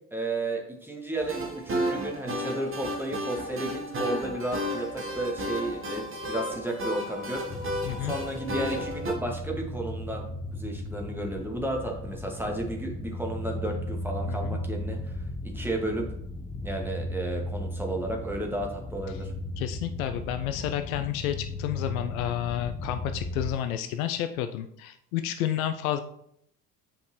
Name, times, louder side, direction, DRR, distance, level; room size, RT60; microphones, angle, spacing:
voice 1, 0.1-7.4 8.0-10.2 10.5-15.1 15.4-16.1 16.6-19.3, right 2 dB, 5° right, 0 dB, 1.9 m, -33 dB
sound 1, 1.2-9.1, equal, 25° right, 1.4 m, -33 dB
sound 2, 7.5-23.6, left 1 dB, 15° left, 0.7 m, -36 dB
voice 2, 14.2-14.6 19.6-26.0, left 11 dB, 60° left, 9 dB, 0.6 m, -30 dB
8.8 x 5.2 x 3.1 m, 0.72 s
figure-of-eight pair, 55°, 47 cm